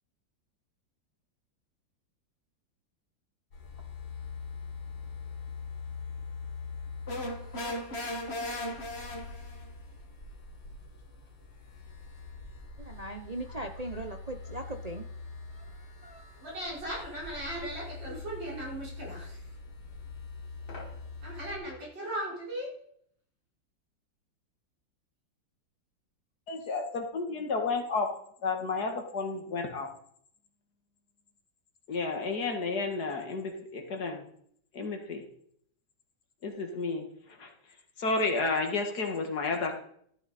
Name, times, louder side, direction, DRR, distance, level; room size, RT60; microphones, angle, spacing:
sound 1, 3.5-21.6, left 4 dB, 85° left, 3.7 m, -43 dB
sound 2, 7.1-9.7, left 1 dB, 35° left, 2.1 m, -36 dB
voice 1, 12.8-15.1 15.5-16.3, right 2 dB, 60° right, 0.4 m, -40 dB
voice 2, 16.4-19.4 21.2-22.7, right 1 dB, 75° right, 5.7 m, -37 dB
voice 3, 26.5-28.1 28.4-29.9 31.9-34.3 34.7-35.2 36.4-37.5 38.0-39.8, left 3 dB, 55° left, 2.3 m, -31 dB
14.0 x 12.5 x 4.2 m
omnidirectional pair, 2.0 m